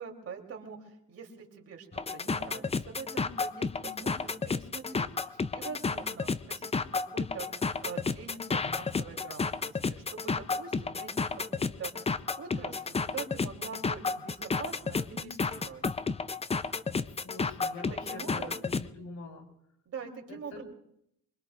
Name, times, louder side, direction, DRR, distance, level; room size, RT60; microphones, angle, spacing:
voice 1, 0.0-12.1 12.4-15.8 17.9-18.5 19.8-20.6, right 5 dB, 50° right, 1 dB, 3.4 m, -44 dB
sound 1, 1.9-18.9, left 4 dB, 20° left, 0.6 m, -32 dB
voice 2, 3.8-4.2 16.9-19.5 20.3-20.6, left 3 dB, 70° left, 2 dB, 3.8 m, -45 dB
24.5 x 22.0 x 2.5 m, 0.76 s
cardioid pair, 90°, 30 cm